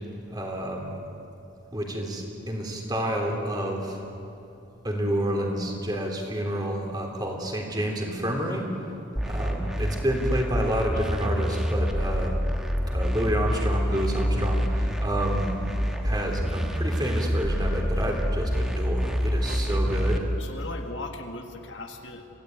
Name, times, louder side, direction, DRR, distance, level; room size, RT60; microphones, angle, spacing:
voice 1, 0.3-0.9 1.7-4.0 4.8-8.6 9.3-12.4 12.9-15.5 16.0-20.3, right 1 dB, 20° right, 1 dB, 3.3 m, -29 dB
sound 1, 9.2-20.2, equal, 5° right, 1.5 m, -27 dB
voice 2, 20.4-22.3, left 2 dB, 60° left, 4 dB, 1.8 m, -38 dB
26.0 x 16.5 x 9.2 m, 2.8 s
head